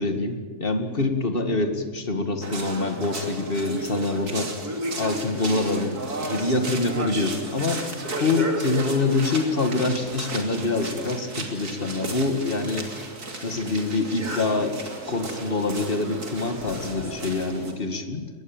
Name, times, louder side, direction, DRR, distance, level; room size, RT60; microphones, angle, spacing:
voice 1, 0.0-4.5 5.0-7.9 8.2-12.9 13.4-14.8 15.1-18.3, left 3 dB, 35° left, 7 dB, 2.3 m, -25 dB
sound 1, 2.4-17.7, right 2 dB, 85° right, 3.4 m, -33 dB
22.0 x 19.5 x 9.0 m, 1.5 s
omnidirectional pair, 1.6 m